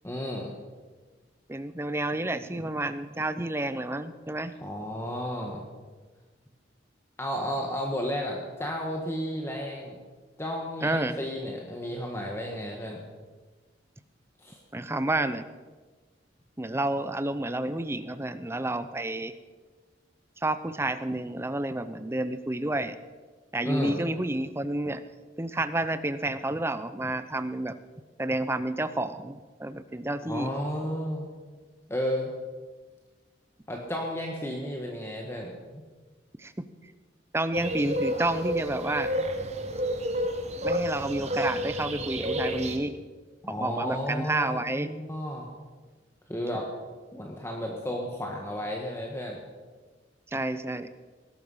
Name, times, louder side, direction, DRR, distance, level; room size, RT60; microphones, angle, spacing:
voice 1, 0.0-0.6 4.6-5.6 7.2-10.0 10.4-13.0 14.4-14.6 23.6-24.0 30.2-31.3 31.9-32.3 33.7-35.8 43.4-45.5 46.3-46.7 47.1-49.4, equal, 15° left, 0 dB, 1.6 m, -33 dB
voice 2, 1.5-4.6 10.8-11.2 14.7-15.5 16.6-19.3 20.4-23.0 23.5-25.0 25.4-27.8 28.2-30.5 36.4-36.5 37.3-39.1 40.6-42.9 43.5-44.9 50.3-50.9, right 2 dB, 15° right, 12 dB, 0.7 m, -30 dB
sound 1, 37.5-42.8, equal, 40° right, 1.4 m, -30 dB
20.0 x 12.0 x 5.7 m, 1.4 s
head